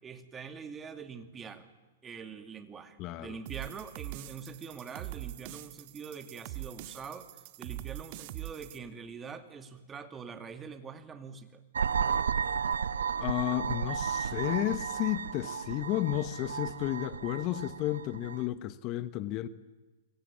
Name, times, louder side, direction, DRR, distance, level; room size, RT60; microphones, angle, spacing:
voice 1, 0.0-1.7 2.0-7.3 7.6-11.6, right 6 dB, 20° right, 2.4 m, -44 dB
voice 2, 3.0-3.4 13.2-19.5, left 15 dB, 40° left, 1.2 m, -32 dB
sound 1, 3.5-8.8, right 16 dB, 50° right, 1.9 m, -43 dB
sound 2, 11.7-18.5, right 7 dB, 85° right, 1.0 m, -33 dB
29.0 x 23.5 x 8.7 m
hypercardioid pair, 120°, 0 cm